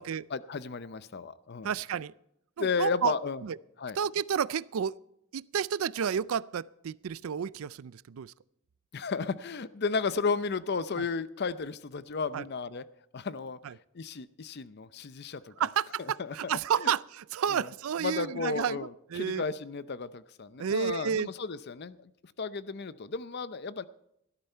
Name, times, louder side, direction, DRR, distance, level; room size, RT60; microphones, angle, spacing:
voice 1, 0.3-1.7 2.6-3.4 3.8-4.0 8.9-12.8 13.1-13.6 13.9-15.7 16.0-16.9 17.5-17.7 18.0-23.9, left 4 dB, 50° left, 15 dB, 0.6 m, -34 dB
voice 2, 1.6-2.1 2.6-3.1 3.4-3.6 4.0-4.9 5.3-8.3 12.3-12.4 13.6-13.7 15.6-19.4 20.6-21.3, right 7 dB, 80° right, 20 dB, 0.4 m, -31 dB
17.5 x 13.0 x 4.5 m, 0.79 s
head